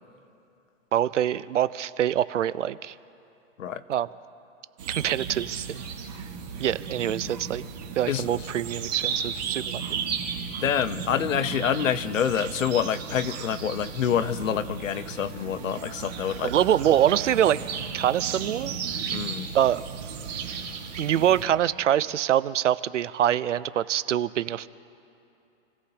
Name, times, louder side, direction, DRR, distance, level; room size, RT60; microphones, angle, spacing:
voice 1, 0.9-2.9 3.9-4.1 4.9-5.8 6.6-7.6 8.0-10.0 16.4-17.6 17.9-19.1 19.5-19.8 21.0-24.7, right 10 dB, 65° right, 16 dB, 0.7 m, -25 dB
sound 1, 4.8-21.4, right 6 dB, 30° right, 1.7 m, -34 dB
voice 2, 10.6-16.5 19.1-19.5, left 9 dB, 75° left, 11 dB, 1.0 m, -27 dB
30.0 x 16.5 x 2.9 m, 2.7 s
hypercardioid pair, 175°, 39 cm